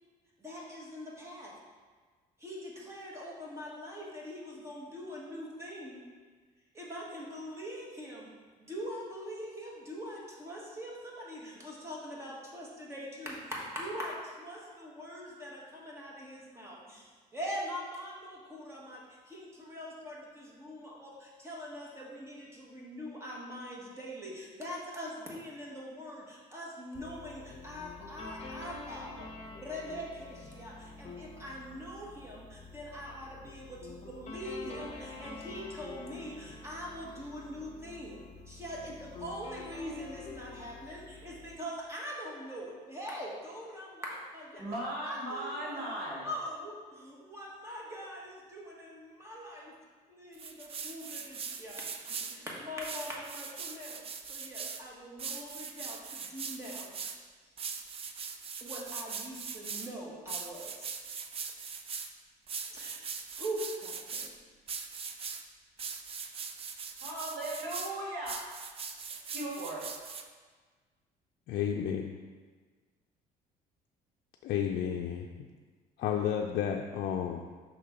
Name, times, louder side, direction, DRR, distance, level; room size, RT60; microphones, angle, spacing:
voice 1, 0.4-1.5 2.4-6.0 6.7-8.3 8.6-29.3 29.6-38.2 38.5-44.7 45.0-49.8 50.1-56.9 58.6-60.9 62.7-63.0 63.3-64.3, equal, 15° right, -4 dB, 1.5 m, -43 dB
sound 1, 26.9-41.6, left 3 dB, 40° left, 0.9 m, -47 dB
voice 2, 44.6-46.2 67.0-68.4 69.3-69.8, right 1 dB, 70° right, -5 dB, 1.8 m, -37 dB
sound 2, 50.3-52.4 52.8-54.8 55.2-57.2 57.6-59.9 60.3-62.1 62.5-64.3 64.7-65.4 65.8-67.9 68.3-70.2, right 6 dB, 35° right, 0.5 m, -41 dB
voice 3, 71.5-72.0 74.4-75.3 76.0-77.4, left 9 dB, 70° left, 1 dB, 0.4 m, -31 dB
6.0 x 3.8 x 5.1 m, 1.5 s
cardioid pair, 110°, 17 cm